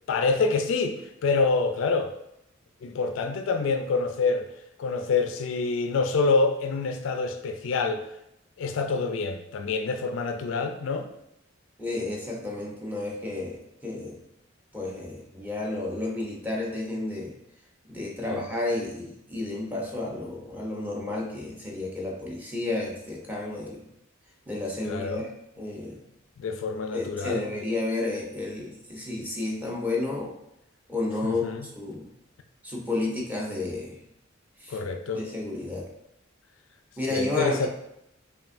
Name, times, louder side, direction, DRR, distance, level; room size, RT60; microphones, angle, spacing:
voice 1, 0.1-2.1 2.8-4.5 4.8-8.0 8.6-11.1 18.2-18.4 24.9-25.2 26.4-27.4 31.2-31.6 34.7-35.3 37.1-37.7, left 4 dB, 70° left, 7 dB, 0.3 m, -26 dB
voice 2, 11.8-14.2 14.7-17.3 17.9-23.9 24.5-25.3 25.6-26.0 26.9-30.3 30.9-32.1 32.6-34.0 34.6-34.8 35.1-35.9 37.0-37.7, left 2 dB, 10° right, -4 dB, 0.7 m, -31 dB
5.3 x 2.5 x 2.6 m, 0.80 s
head